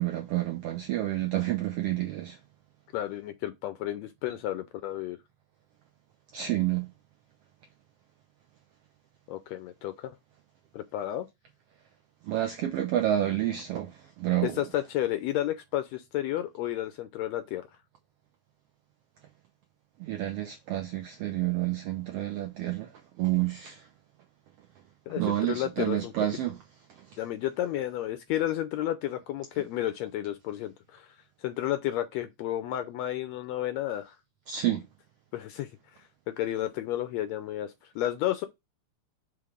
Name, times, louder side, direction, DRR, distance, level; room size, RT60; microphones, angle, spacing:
voice 1, 0.0-2.4 6.3-6.9 12.3-13.9 14.2-14.6 20.0-22.9 23.2-23.8 25.2-26.5 34.5-34.8, right 13 dB, 85° right, 1.3 m, -29 dB
voice 2, 2.9-5.2 9.3-10.2 10.7-11.3 14.4-17.7 25.1-26.1 27.2-31.2 31.4-34.2 35.3-35.7 36.3-38.5, left 13 dB, 80° left, 1.6 m, -32 dB
5.8 x 3.2 x 5.0 m
omnidirectional pair, 3.5 m